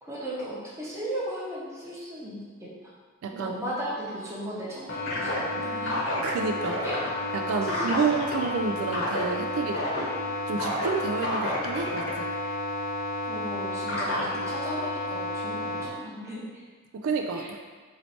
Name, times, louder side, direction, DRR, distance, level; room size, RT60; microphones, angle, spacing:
voice 1, 0.0-2.4 3.3-5.9 6.8-7.0 7.7-7.8 13.3-16.6, equal, 15° right, -6 dB, 0.8 m, -36 dB
voice 2, 3.2-3.5 6.2-6.8 7.3-9.8 10.5-12.3 17.0-17.6, right 5 dB, 80° right, 3 dB, 0.3 m, -29 dB
sound 1, 4.9-15.8, left 1 dB, 60° left, 0.9 m, -30 dB
3.1 x 2.9 x 4.1 m, 1.5 s
head